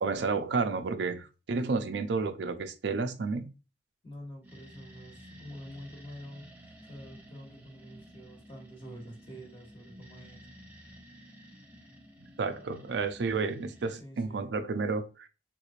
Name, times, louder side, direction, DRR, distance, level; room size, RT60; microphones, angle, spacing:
voice 1, 0.0-3.5 12.4-15.3, right 4 dB, 70° right, 0.4 m, -31 dB
voice 2, 4.0-10.4 14.0-14.5, equal, 30° left, 1.1 m, -47 dB
sound 1, 4.4-14.0, equal, 10° right, 0.5 m, -52 dB
3.5 x 3.1 x 2.4 m
head